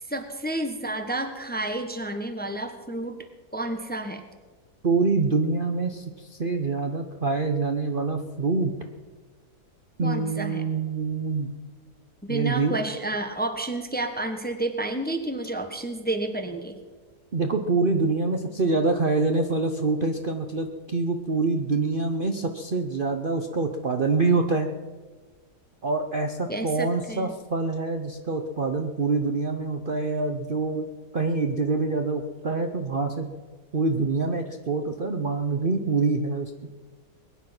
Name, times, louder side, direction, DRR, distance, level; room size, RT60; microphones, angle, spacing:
voice 1, 0.1-3.1 3.5-4.2 10.0-10.6 12.2-16.8 26.5-27.3, right 2 dB, 5° left, 6 dB, 1.1 m, -30 dB
voice 2, 4.8-8.7 10.0-11.5 12.3-12.7 17.3-24.7 25.8-30.9 31.1-33.3 33.7-36.5, right 3 dB, 40° right, 4 dB, 0.9 m, -25 dB
21.5 x 10.5 x 6.0 m, 1.4 s
omnidirectional pair, 1.8 m